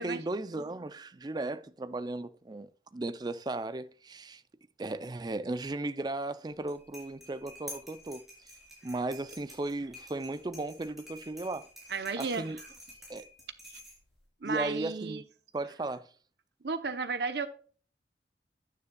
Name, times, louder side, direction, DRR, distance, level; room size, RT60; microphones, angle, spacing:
voice 1, 0.0-4.4 4.8-8.5 8.8-11.7 12.2-12.6 13.1-13.3 14.4-15.2 15.5-16.1, right 2 dB, 25° right, 0.4 m, -36 dB
sound 1, 6.5-14.3, equal, ahead, 3.9 m, -50 dB
voice 2, 11.9-12.5 14.4-15.2 16.6-17.5, right 4 dB, 70° right, 0.8 m, -33 dB
9.6 x 9.4 x 2.3 m
head